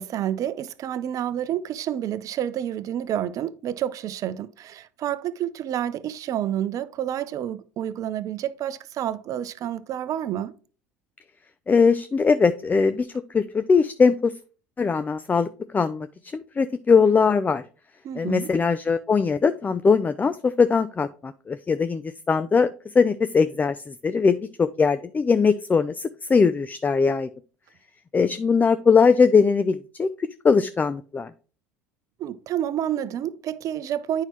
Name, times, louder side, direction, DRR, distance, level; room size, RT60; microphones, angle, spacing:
voice 1, 0.0-10.5 18.0-18.5 32.2-34.2, right 11 dB, 45° right, 0.6 m, -29 dB
voice 2, 11.7-14.3 14.8-15.5 15.7-16.1 16.3-17.6 18.2-27.3 28.1-31.3, left 5 dB, 20° left, 0.5 m, -21 dB
8.9 x 5.6 x 3.1 m
hypercardioid pair, 75°, 8 cm